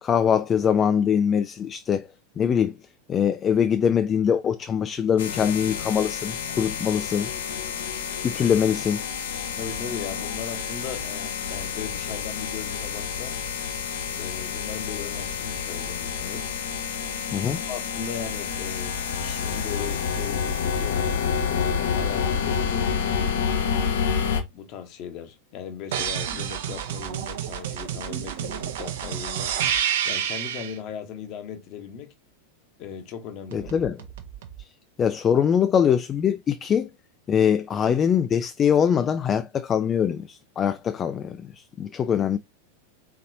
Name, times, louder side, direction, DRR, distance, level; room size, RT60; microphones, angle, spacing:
voice 1, 0.0-2.1 2.4-2.8 3.1-7.3 8.2-9.0 17.3-17.6 33.5-34.0 34.6-34.7 35.0-36.9 37.3-42.4, left 8 dB, 25° left, 0.3 m, -23 dB
sound 1, 5.2-24.4, left 6 dB, 60° left, 0.7 m, -29 dB
voice 2, 9.5-13.4 14.1-16.5 17.7-18.9 19.2-23.1 24.5-29.6 30.0-32.1 32.8-33.7, left 7 dB, 40° left, 1.1 m, -38 dB
sound 2, 25.9-30.8 33.5-34.6, right 9 dB, 55° right, 0.8 m, -29 dB
4.1 x 4.0 x 2.7 m
figure-of-eight pair, 90°, 0 cm